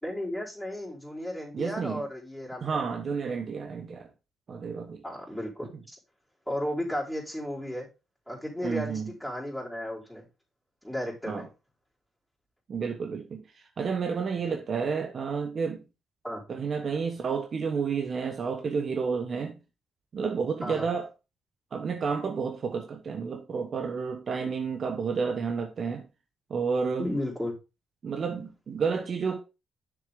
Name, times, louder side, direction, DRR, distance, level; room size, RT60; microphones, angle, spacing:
voice 1, 0.0-2.9 5.0-5.7 6.5-7.9 8.3-10.3 10.8-11.5 16.2-16.4 20.6-20.9 27.0-27.5, left 1 dB, ahead, 3.9 m, -34 dB
voice 2, 1.5-2.0 2.6-4.1 4.5-5.0 8.6-9.1 11.3-11.5 12.7-13.4 13.8-15.8 16.5-19.6 20.1-21.1 21.7-26.0 26.5-27.1 28.0-29.4, right 5 dB, 50° right, 1.0 m, -30 dB
6.9 x 6.7 x 3.6 m
cardioid pair, 90°, 0 cm